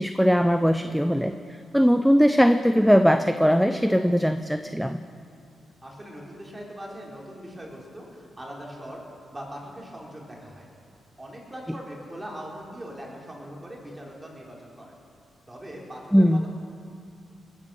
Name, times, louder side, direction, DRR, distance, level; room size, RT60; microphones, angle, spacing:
voice 1, 0.0-1.3 1.7-5.0 16.1-16.4, equal, ahead, 9 dB, 0.6 m, -20 dB
voice 2, 5.8-9.0 9.3-10.7 11.2-14.9 15.5-16.5, equal, 15° right, -3 dB, 4.1 m, -41 dB
20.0 x 10.0 x 6.5 m, 2.5 s
cardioid pair, 75°, 0 cm